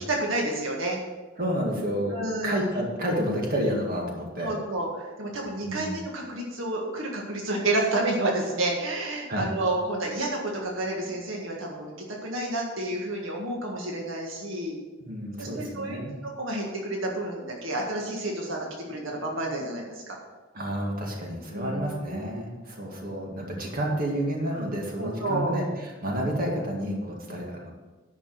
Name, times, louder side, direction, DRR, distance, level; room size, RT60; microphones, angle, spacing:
voice 1, 0.1-1.0 2.1-2.7 4.4-11.9 12.2-14.8 15.4-16.0 16.2-20.2 21.5-22.4 25.0-25.6, right 2 dB, 80° right, -1 dB, 1.7 m, -30 dB
voice 2, 1.4-2.2 2.4-4.5 5.6-5.9 9.3-9.5 15.0-16.1 20.5-27.7, equal, 45° right, -1 dB, 2.1 m, -30 dB
11.0 x 5.3 x 6.5 m, 1.2 s
head